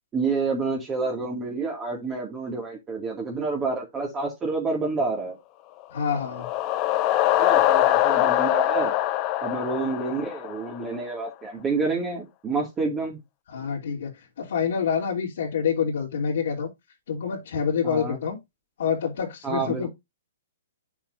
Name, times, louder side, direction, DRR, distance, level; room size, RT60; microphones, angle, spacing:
voice 1, 0.1-5.4 7.4-8.9 9.4-13.2 17.8-18.2 19.4-19.9, right 4 dB, 15° right, 2.4 m, -28 dB
voice 2, 5.9-6.5 13.5-14.1 14.4-16.7 17.1-18.4 18.8-19.9, left 7 dB, 70° left, 3.2 m, -27 dB
sound 1, 6.0-10.9, left 14 dB, 30° left, 0.9 m, -23 dB
8.6 x 7.2 x 2.7 m
hypercardioid pair, 145°, 0 cm